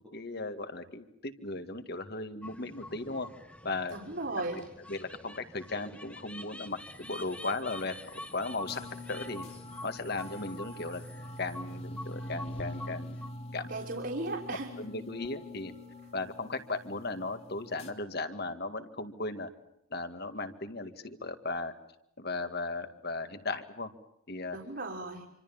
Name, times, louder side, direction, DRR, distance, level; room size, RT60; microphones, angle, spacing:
voice 1, 0.1-3.3 3.6-4.0 4.9-8.8 9.1-9.5 9.8-11.0 11.4-13.2 13.5-13.7 14.8-15.7 16.1-19.5 19.9-21.7 22.2-23.9 24.3-24.6, left 3 dB, 50° left, 9 dB, 2.1 m, -36 dB
sound 1, 2.4-13.3, left 1 dB, 5° left, 1.5 m, -47 dB
voice 2, 3.9-4.6 13.7-14.7 24.5-25.3, right 2 dB, 50° right, -1 dB, 3.5 m, -36 dB
sound 2, 8.6-17.9, left 1 dB, 30° left, 2.7 m, -44 dB
27.5 x 26.0 x 7.2 m, 0.78 s
head